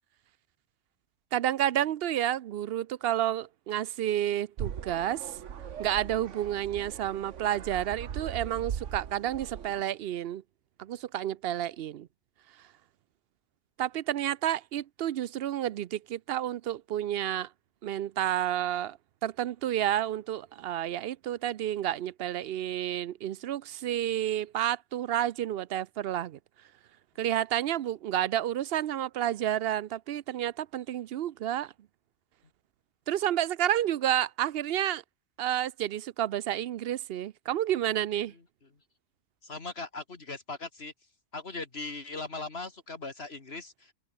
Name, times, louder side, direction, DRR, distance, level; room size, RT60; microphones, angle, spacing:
voice 1, 1.3-5.3 5.8-10.4 10.8-12.1 13.8-17.5 17.8-19.0 19.2-26.4 27.2-31.7 33.1-35.0 35.4-38.3, right 11 dB, 65° right, 0.7 m, -30 dB
sound 1, 4.6-9.8, right 8 dB, 85° right, 1.4 m, -39 dB
voice 2, 39.4-40.9 41.3-43.9, left 3 dB, 60° left, 2.4 m, -39 dB
open air
omnidirectional pair, 1.2 m